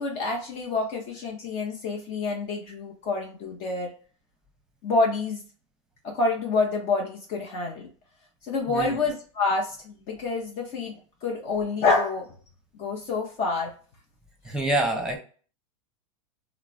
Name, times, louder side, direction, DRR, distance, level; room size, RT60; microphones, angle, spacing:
voice 1, 0.0-3.9 4.8-5.4 6.0-7.9 8.4-12.3 12.8-13.7, left 3 dB, 50° left, -1 dB, 0.7 m, -27 dB
voice 2, 8.7-9.0 14.4-15.2, right 1 dB, 5° right, 2 dB, 0.8 m, -26 dB
3.1 x 2.0 x 2.4 m, 0.41 s
hypercardioid pair, 115°, 17 cm